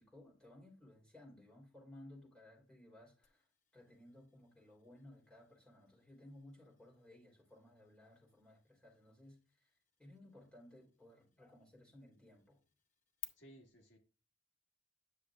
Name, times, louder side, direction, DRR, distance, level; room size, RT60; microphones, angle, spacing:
voice 1, 0.0-3.5 3.7-9.7 10.0-12.6, left 1 dB, 5° left, 3.5 m, -59 dB
sound 1, 3.2-13.2, left 11 dB, 40° left, 0.6 m, -60 dB
voice 2, 13.3-14.0, right 1 dB, 65° left, 1.8 m, -59 dB
9.9 x 6.5 x 2.5 m
head